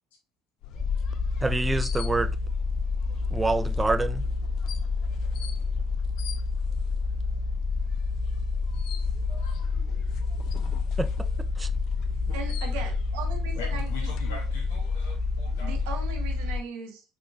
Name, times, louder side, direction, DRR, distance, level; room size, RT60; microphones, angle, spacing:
sound 1, 0.6-16.5, left 9 dB, 65° left, 0.4 m, -43 dB
sound 2, 0.8-16.6, left 4 dB, 30° left, 0.8 m, -29 dB
voice 1, 1.4-2.4 3.3-4.2 11.0-11.1 11.6-11.7, right 3 dB, 20° right, 0.4 m, -26 dB
voice 2, 9.3-9.8 13.5-15.9, left 3 dB, 85° left, 0.9 m, -42 dB
voice 3, 12.3-14.1 15.6-17.0, right 5 dB, 80° right, 0.8 m, -38 dB
3.5 x 3.3 x 2.5 m
hypercardioid pair, 65°, 0 cm